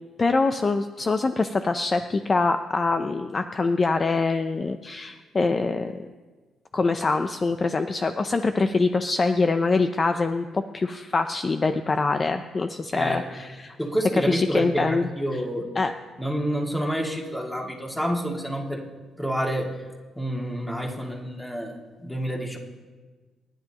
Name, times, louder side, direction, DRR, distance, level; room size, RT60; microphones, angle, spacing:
voice 1, 0.2-6.1 6.7-13.8 14.1-15.4 15.8-15.9, left 3 dB, 35° left, 8 dB, 0.6 m, -24 dB
voice 2, 12.9-13.3 13.8-15.7 16.2-18.8 19.2-19.8 20.2-22.6, equal, 5° left, -1 dB, 2.4 m, -28 dB
27.5 x 10.5 x 3.0 m, 1.4 s
cardioid pair, 90°, 0 cm